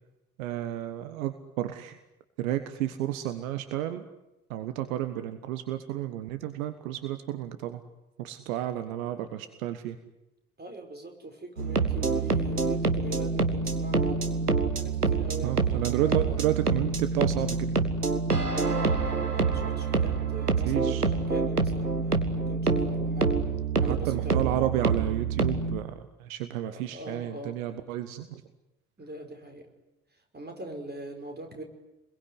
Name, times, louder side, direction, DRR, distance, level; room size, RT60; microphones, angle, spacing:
voice 1, 0.4-2.0 2.4-4.0 4.5-7.8 8.2-10.0 15.4-17.9 20.6-21.0 23.8-28.4, right 12 dB, 65° right, 10 dB, 1.4 m, -31 dB
voice 2, 10.6-14.3 14.8-16.4 18.5-23.4 23.8-24.5 26.7-27.6 29.0-29.7 30.1-31.6, right 1 dB, 20° right, 5 dB, 5.3 m, -42 dB
sound 1, 11.6-25.8, right 4 dB, 90° right, 1.5 m, -26 dB
28.0 x 22.0 x 9.7 m, 0.96 s
figure-of-eight pair, 55°, 45 cm